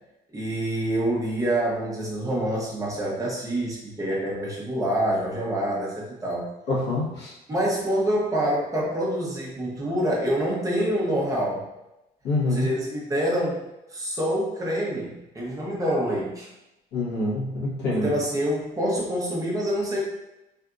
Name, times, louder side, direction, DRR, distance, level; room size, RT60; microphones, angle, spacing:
voice 1, 0.3-6.5 7.5-11.6 12.4-13.6 13.9-16.5 17.9-20.0, right 1 dB, 20° right, -4 dB, 0.9 m, -26 dB
voice 2, 6.7-7.3 12.2-12.7 16.9-18.1, left 2 dB, 80° left, -7 dB, 1.4 m, -26 dB
3.4 x 2.6 x 2.4 m, 0.91 s
cardioid pair, 110°, 17 cm